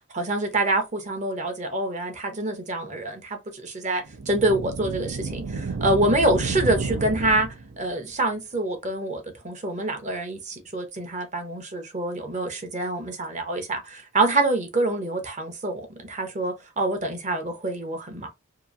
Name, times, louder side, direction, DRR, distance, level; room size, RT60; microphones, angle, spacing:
voice 1, 0.1-7.5 7.8-18.3, right 2 dB, 35° right, 0.7 m, -26 dB
sound 1, 4.1-7.9, right 3 dB, 85° right, 0.6 m, -31 dB
2.9 x 2.5 x 2.4 m
head